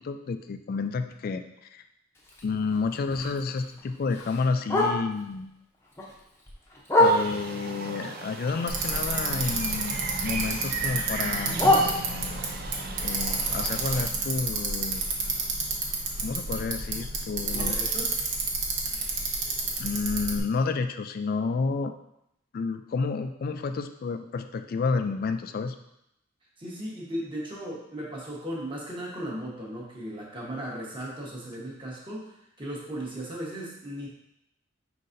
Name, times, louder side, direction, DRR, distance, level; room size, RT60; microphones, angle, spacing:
voice 1, 0.0-1.4 1.7-1.8 2.4-5.5 7.0-11.6 13.0-15.1 16.2-17.8 19.8-21.9 22.5-25.8, left 4 dB, 50° left, 9 dB, 0.3 m, -30 dB
Bark, 2.1-5.3 5.7-7.6 8.1-9.9 10.2-12.5 13.0-16.9 17.2-17.3 17.6-18.0 18.4-18.5 18.9-19.0 19.5-19.6, left 1 dB, 15° left, 0.7 m, -29 dB
sound 1, 7.0-14.0, right 4 dB, 50° right, 0.4 m, -37 dB
Bicycle, 8.7-20.4, right 3 dB, 70° right, 0.9 m, -30 dB
voice 2, 17.5-18.1 26.6-32.3 32.6-34.1, right 1 dB, 25° right, -4 dB, 1.1 m, -36 dB
5.3 x 3.9 x 2.6 m, 0.81 s
head